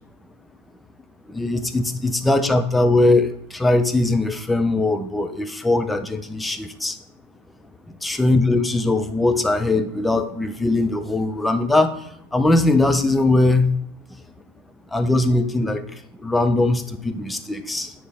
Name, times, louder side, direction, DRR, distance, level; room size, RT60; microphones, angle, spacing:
voice 1, 1.3-7.0 7.9-12.0 12.3-13.8 14.9-15.9 16.2-17.9, left 2 dB, 5° left, 7 dB, 0.6 m, -20 dB
8.2 x 4.7 x 4.2 m, 0.71 s
figure-of-eight pair, 90°, 0 cm